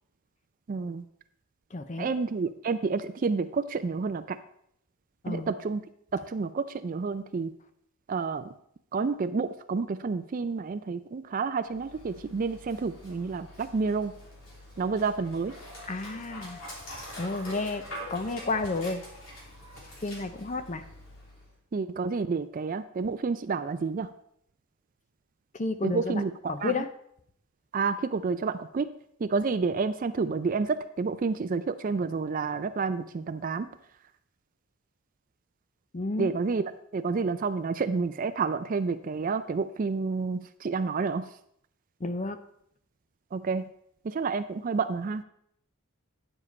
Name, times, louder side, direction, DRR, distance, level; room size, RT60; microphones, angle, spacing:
voice 1, 0.7-1.0 2.0-4.4 5.3-5.8 6.1-7.5 8.1-8.5 8.9-14.1 14.8-15.5 21.7-24.1 25.8-26.3 26.6-26.7 27.7-28.9 29.2-33.7 36.2-41.3 43.3-43.7 44.0-45.2, right 4 dB, 40° right, 11 dB, 0.3 m, -29 dB
voice 2, 1.7-2.1 5.2-5.5 15.9-16.6 17.2-17.8 18.1-19.0 20.0-20.8 25.5-26.2 26.5-26.9 35.9-36.4 42.0-42.4, left 3 dB, 35° left, 9 dB, 0.6 m, -31 dB
Dog, 11.6-21.6, equal, 65° left, 3.3 m, -45 dB
9.8 x 7.1 x 4.2 m, 0.70 s
head